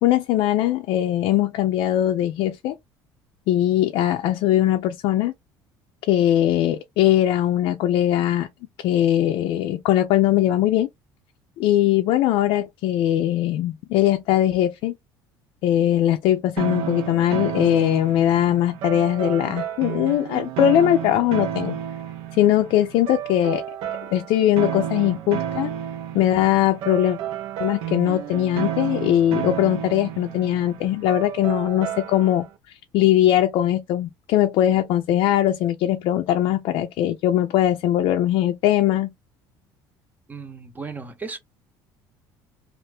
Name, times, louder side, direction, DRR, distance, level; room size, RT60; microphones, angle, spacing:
voice 1, 0.0-2.7 3.5-5.3 6.1-8.5 8.8-10.9 11.6-14.9 15.6-21.8 22.3-23.6 24.1-25.7 26.1-27.2 27.6-32.4 32.9-39.1, left 12 dB, 70° left, 0.5 m, -20 dB
sound 1, 16.6-32.5, right 10 dB, 75° right, 0.8 m, -31 dB
voice 2, 40.3-41.4, right 4 dB, 20° right, 0.8 m, -35 dB
2.7 x 2.5 x 3.3 m
cardioid pair, 120°, 9 cm